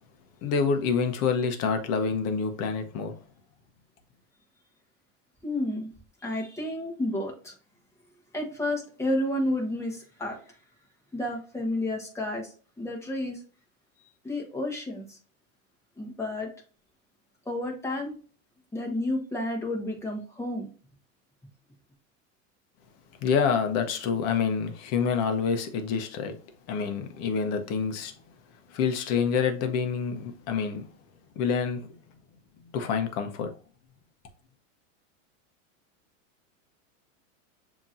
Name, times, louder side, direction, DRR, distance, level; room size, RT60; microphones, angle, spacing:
voice 1, 0.4-3.1 23.2-26.4 26.7-28.1 28.7-30.8 31.4-31.9 32.7-33.5, left 6 dB, 40° left, 0.9 m, -27 dB
voice 2, 5.4-5.9 6.2-7.5 8.3-10.6 11.1-13.4 14.2-15.2 16.0-16.5 17.4-18.2 18.7-20.7, left 1 dB, 5° left, 1.2 m, -31 dB
6.8 x 2.9 x 2.5 m
supercardioid pair, 135°, 39 cm